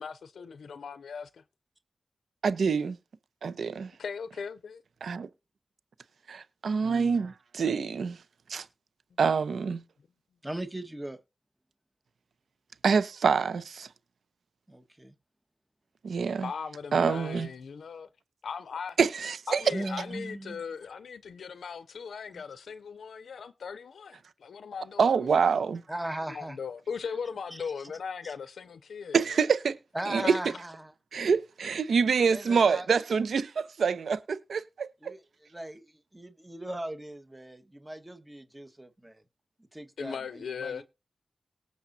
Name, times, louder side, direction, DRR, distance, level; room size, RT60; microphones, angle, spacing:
voice 1, 0.0-1.4 4.0-4.8 16.4-18.1 18.4-19.0 19.5-25.3 26.3-29.2 30.2-30.3 40.0-40.8, left 6 dB, 90° left, 0.5 m, -38 dB
voice 2, 2.4-3.0 3.4-3.9 5.0-5.3 6.3-8.2 8.5-8.7 9.2-9.8 12.8-13.9 16.0-16.5 16.9-17.5 19.0-19.6 25.0-25.8 29.1-29.8 30.1-30.3 31.1-35.1, right 5 dB, 85° right, 0.8 m, -26 dB
voice 3, 6.8-7.3 10.4-11.2 14.7-15.1 19.7-20.6 22.3-22.4 25.9-26.6 27.5-27.7 28.2-28.3 29.9-30.9 32.2-32.9 35.0-39.2 39.7-40.8, right 1 dB, 20° right, 1.4 m, -39 dB
18.5 x 7.1 x 2.7 m
cardioid pair, 45°, 0 cm